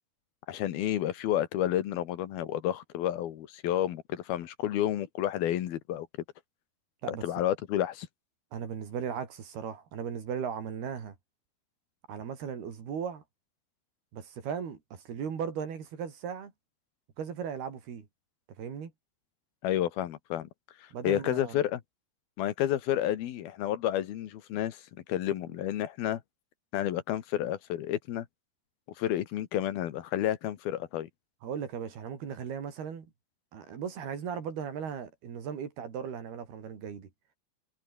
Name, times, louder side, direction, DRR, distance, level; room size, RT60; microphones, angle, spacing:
voice 1, 0.5-6.1 7.2-8.1 19.6-20.5 21.0-21.8 22.4-24.8 25.1-26.2 26.7-28.3 29.0-31.1, left 12 dB, 75° left, 3.3 m, -30 dB
voice 2, 8.5-11.2 12.1-13.2 14.1-16.5 17.2-18.1 18.6-18.9 20.9-21.7 31.4-33.1 33.5-37.1, right 7 dB, 75° right, 5.6 m, -37 dB
omnidirectional pair, 4.5 m